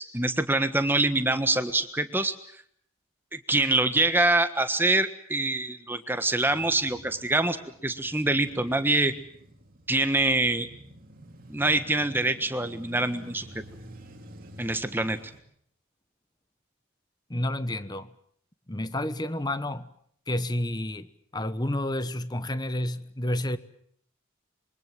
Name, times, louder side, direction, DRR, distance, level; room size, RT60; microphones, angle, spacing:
voice 1, 0.0-2.3 3.3-7.6 7.8-9.1 9.9-10.7 11.5-13.5 14.6-15.2, right 2 dB, 10° right, 1.4 m, -25 dB
Male speech man speaking / Motorcycle / Idling, 6.5-15.4, right 1 dB, 40° right, 3.0 m, -48 dB
voice 2, 17.3-18.1 18.7-19.9 20.3-21.1 21.3-23.6, left 1 dB, 20° left, 1.1 m, -30 dB
26.0 x 24.0 x 7.6 m
head